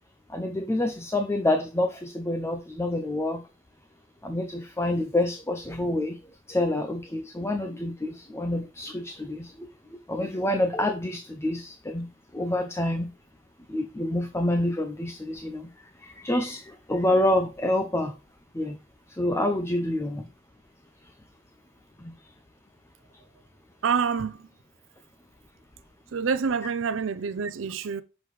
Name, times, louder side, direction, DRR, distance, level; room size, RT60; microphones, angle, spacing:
voice 1, 0.3-3.4 4.2-6.2 6.5-9.7 10.1-12.1 12.3-13.1 13.7-15.7 16.0-18.1 18.5-18.8 19.2-20.3 22.0-22.1, left 1 dB, 15° left, 0.5 m, -27 dB
voice 2, 23.8-24.5 26.1-28.0, right 6 dB, 80° right, 0.5 m, -27 dB
6.1 x 5.1 x 3.1 m
head